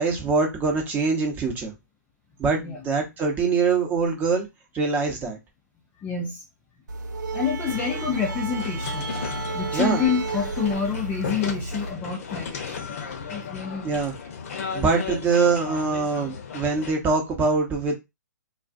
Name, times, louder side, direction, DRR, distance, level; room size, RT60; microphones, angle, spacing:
voice 1, 0.0-1.7 2.4-4.5 4.7-5.4 9.7-10.0 13.8-14.1 14.7-17.9, right 4 dB, 15° right, 2 dB, 0.8 m, -23 dB
voice 2, 6.0-6.4 7.3-9.1 9.5-13.9, left 6 dB, 15° left, 1 dB, 0.4 m, -28 dB
sound 1, 6.9-11.9, right 4 dB, 75° right, 0.6 m, -32 dB
sound 2, 7.7-16.9, left 6 dB, 45° left, 0.7 m, -35 dB
2.3 x 2.2 x 2.5 m, 0.22 s
hypercardioid pair, 135°, 10 cm